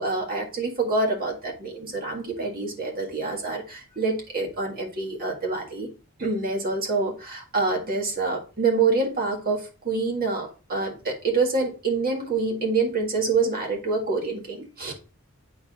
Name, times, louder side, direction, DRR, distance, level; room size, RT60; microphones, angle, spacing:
voice 1, 0.0-5.9 6.2-14.9, right 3 dB, 45° right, 1 dB, 1.7 m, -26 dB
9.2 x 4.4 x 2.4 m, 0.34 s
head